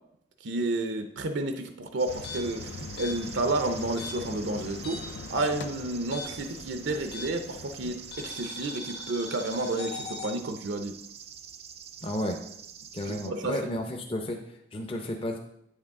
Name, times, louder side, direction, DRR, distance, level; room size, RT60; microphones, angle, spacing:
voice 1, 0.4-10.9 13.1-13.7, right 2 dB, 75° right, 7 dB, 0.6 m, -31 dB
sound 1, 2.0-13.3, right 8 dB, 35° right, 0.4 m, -46 dB
sound 2, 2.1-8.3, left 4 dB, 75° left, 0.4 m, -43 dB
sound 3, 2.1-5.3 5.5-7.6 8.1-10.3, left 2 dB, 55° left, 1.7 m, -40 dB
voice 2, 12.0-12.4 12.9-14.4 14.7-15.4, left 1 dB, 30° left, 3 dB, 0.6 m, -32 dB
8.3 x 6.5 x 3.6 m, 0.78 s
head